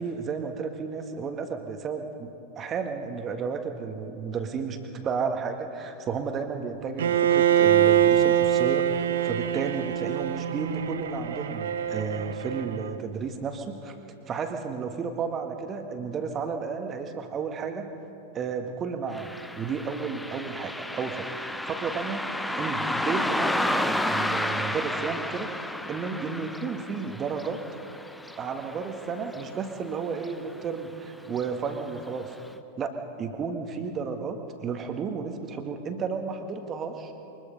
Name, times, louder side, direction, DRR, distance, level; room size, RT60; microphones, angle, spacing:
voice 1, 0.0-14.0 14.3-17.9 18.3-22.3 22.6-25.5 25.9-27.6 28.4-32.3 32.8-37.1, right 5 dB, 25° right, 6 dB, 1.8 m, -32 dB
Bowed string instrument, 7.0-13.0, right 10 dB, 65° right, 0.8 m, -24 dB
Car passing by, 19.1-29.9 30.2-30.3 31.3-31.4 31.9-32.0 32.5-32.6, left 1 dB, 5° left, 0.8 m, -31 dB
23.0 x 21.0 x 5.5 m, 2.9 s
figure-of-eight pair, 90°, 0 cm